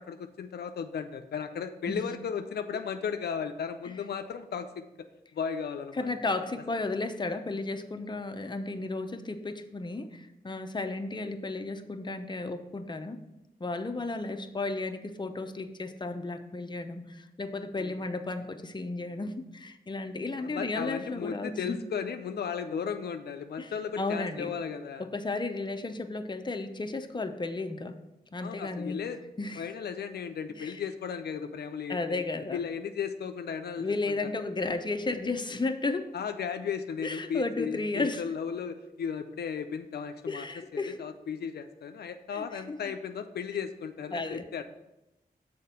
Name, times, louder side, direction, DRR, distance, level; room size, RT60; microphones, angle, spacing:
voice 1, 0.0-4.9 5.3-6.1 17.8-18.0 20.4-25.1 28.4-29.2 29.6-32.2 32.5-33.9 34.2-34.3 36.1-40.5 40.7-44.6, left 7 dB, 80° left, 8 dB, 0.4 m, -35 dB
voice 2, 6.0-13.2 13.6-21.8 22.7-22.8 23.6-24.5 25.0-28.0 28.3-29.0 29.4-29.7 30.6-30.8 31.9-32.6 33.8-36.1 37.0-38.2 40.3-41.0 42.3-42.9 44.1-44.4, left 3 dB, 30° left, 7 dB, 0.7 m, -34 dB
6.5 x 4.2 x 5.6 m, 0.94 s
cardioid pair, 55°, 16 cm